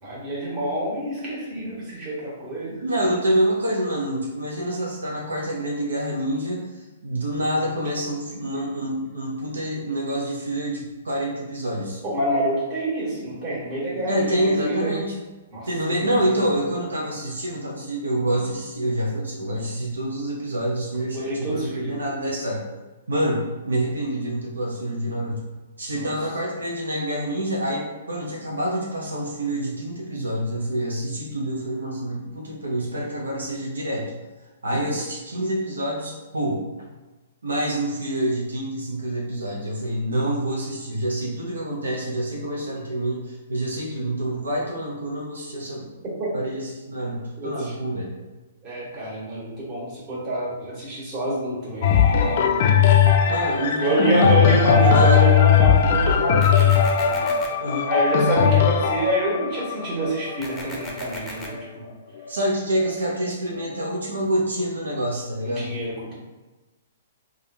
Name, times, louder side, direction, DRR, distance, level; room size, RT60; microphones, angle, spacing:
voice 1, 0.0-2.8 12.0-14.9 15.5-15.7 16.0-16.1 21.1-21.9 25.9-26.1 46.2-46.3 47.4-47.7 48.6-52.9 53.8-57.4 57.9-61.8 65.4-66.2, right 1 dB, 35° right, -6 dB, 1.5 m, -27 dB
voice 2, 2.8-12.0 14.1-15.1 15.7-22.6 23.1-25.4 25.8-34.1 34.6-36.6 37.4-45.9 46.3-48.1 53.2-54.5 54.9-55.2 57.6-57.9 62.3-65.7, right 1 dB, 85° right, -2 dB, 0.6 m, -27 dB
sound 1, 51.8-61.6 62.3-62.4, left 7 dB, 55° left, 0.3 m, -19 dB
sound 2, 56.4-57.5 60.4-61.5, left 1 dB, 5° left, 0.6 m, -37 dB
3.3 x 2.3 x 2.7 m, 1.2 s
hypercardioid pair, 125°, 0 cm